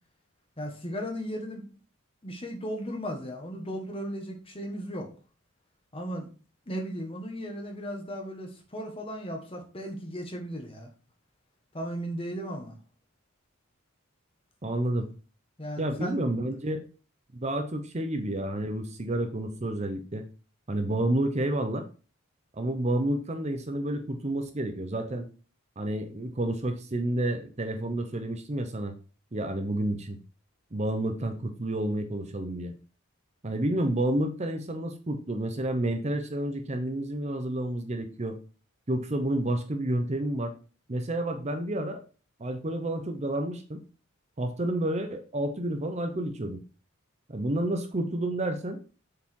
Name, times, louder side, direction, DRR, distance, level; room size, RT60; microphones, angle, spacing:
voice 1, 0.6-1.6 2.2-5.1 5.9-6.3 6.7-10.9 11.7-12.8 15.6-16.2, equal, 25° left, 2 dB, 1.6 m, -36 dB
voice 2, 14.6-15.1 15.8-16.8 17.3-20.2 20.7-21.9 22.6-25.3 25.8-28.9 29.3-30.2 30.7-32.7 33.4-38.4 38.9-40.5 40.9-42.0 42.4-43.8 44.4-46.6 47.3-48.8, right 1 dB, 30° right, 6 dB, 0.8 m, -30 dB
7.0 x 4.9 x 4.6 m, 0.36 s
head